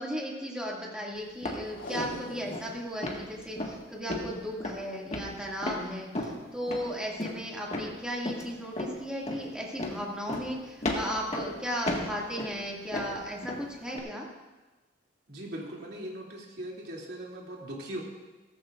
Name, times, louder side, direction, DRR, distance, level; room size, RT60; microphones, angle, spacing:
voice 1, 0.0-14.3, equal, 5° right, -3 dB, 2.3 m, -36 dB
sound 1, 1.4-1.7 2.0-2.3 2.5-2.7 3.0-3.2 3.6-3.8 4.1-4.3 4.6-4.8 5.1-5.8 6.2-6.4 6.7-6.8 7.2-7.4 7.7-7.9 8.3-8.4 8.8-9.0 9.3-9.4 9.8-10.0 10.3-10.5 10.8-11.5 11.9-12.6 12.9-13.6 13.9-14.0, left 1 dB, 35° left, 1.8 m, -33 dB
Packing tape duct tape, 1.7-2.8 3.1-3.4 4.1-4.4 5.4-5.6 6.2-6.3, equal, 85° left, 3.0 m, -42 dB
voice 2, 15.3-18.0, right 1 dB, 60° right, -3 dB, 2.8 m, -39 dB
16.5 x 14.5 x 2.5 m, 1.2 s
head